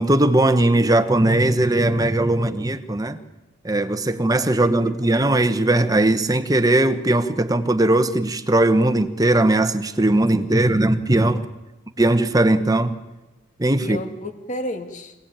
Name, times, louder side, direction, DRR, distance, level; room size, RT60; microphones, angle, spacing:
voice 1, 0.0-3.2 3.6-11.4 12.0-13.0 13.6-14.0, right 1 dB, 20° right, 10 dB, 1.1 m, -19 dB
voice 2, 4.1-5.1 10.5-10.9 13.8-15.1, left 1 dB, 40° left, 6 dB, 2.4 m, -34 dB
25.5 x 18.5 x 8.9 m, 1.1 s
head